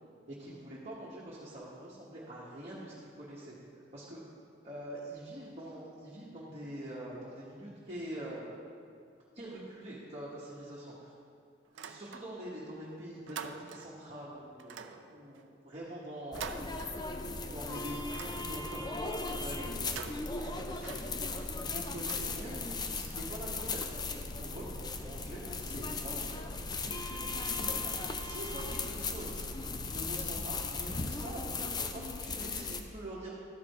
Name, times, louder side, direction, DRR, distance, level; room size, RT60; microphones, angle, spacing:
voice 1, 0.3-4.2 4.6-8.6 9.3-11.1 11.7-16.6 17.5-21.1 21.5-22.6 22.9-24.0 24.4-26.5 26.8-27.3 27.5-29.4 29.8-33.3, right 1 dB, 35° right, -7 dB, 1.2 m, -45 dB
sound 1, 11.7-12.6 12.9-14.1 14.6-17.4 17.8-18.9 19.7-22.8, right 7 dB, 75° right, 0.4 m, -47 dB
sound 2, 16.3-32.8, left 3 dB, 20° left, 0.4 m, -37 dB
12.0 x 4.8 x 4.7 m, 2.3 s
head